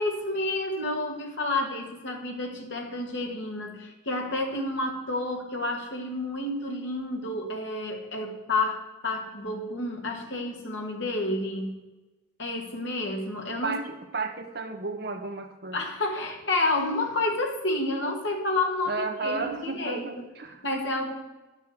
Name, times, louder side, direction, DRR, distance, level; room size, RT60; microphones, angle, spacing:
voice 1, 0.0-11.8 12.4-13.8 15.7-20.1 20.6-21.1, left 2 dB, 65° left, 1 dB, 1.8 m, -30 dB
voice 2, 13.6-15.8 18.9-20.6, right 3 dB, 50° right, 6 dB, 1.0 m, -33 dB
10.5 x 6.7 x 6.6 m, 1.1 s
head